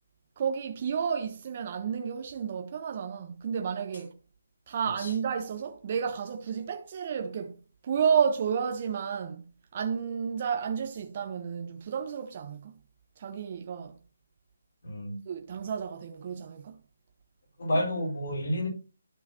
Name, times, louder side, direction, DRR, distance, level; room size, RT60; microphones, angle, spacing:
voice 1, 0.4-4.2 4.7-9.4 9.7-12.8 13.2-14.0 15.3-16.8, right 7 dB, 40° right, 1.0 m, -31 dB
voice 2, 14.8-15.2 17.6-18.7, left 1 dB, 60° left, 4.6 m, -30 dB
12.0 x 5.6 x 2.9 m
figure-of-eight pair, 150°, 0 cm